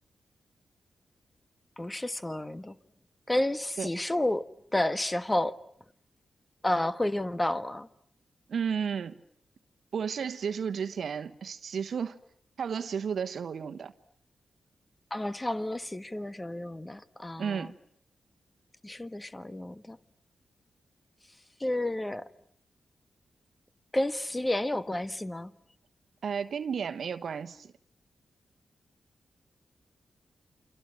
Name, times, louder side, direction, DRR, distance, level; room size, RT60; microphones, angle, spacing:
voice 1, 1.8-2.8 3.3-5.6 6.6-7.9 15.1-17.7 18.8-20.0 21.6-22.3 23.9-25.5, left 1 dB, 20° left, 1.4 m, -31 dB
voice 2, 8.5-9.2 9.9-12.2 12.6-13.9 17.4-17.7 26.2-27.7, right 7 dB, 70° right, 1.2 m, -33 dB
29.0 x 26.5 x 7.6 m
supercardioid pair, 40°, 0 cm